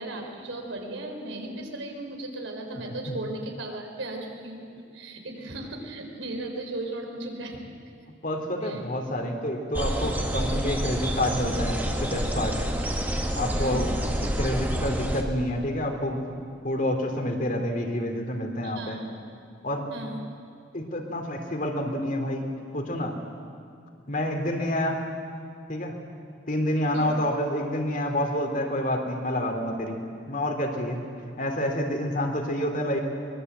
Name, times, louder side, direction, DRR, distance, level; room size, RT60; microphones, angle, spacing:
voice 1, 0.0-4.7 4.9-7.7 8.6-8.8 13.6-13.9 18.6-19.0 19.9-20.2 26.9-27.1, right 2 dB, 85° right, 2 dB, 4.0 m, -36 dB
voice 2, 8.2-12.5 13.4-13.9 14.2-19.0 19.6-19.9 20.7-22.5 22.7-23.1 24.1-25.1 25.7-26.0 26.5-30.0 30.3-31.0 31.4-33.0, left 1 dB, 45° left, 3 dB, 3.0 m, -28 dB
sound 1, 9.7-15.2, equal, 10° right, 1.8 m, -28 dB
23.5 x 21.5 x 8.1 m, 2.4 s
head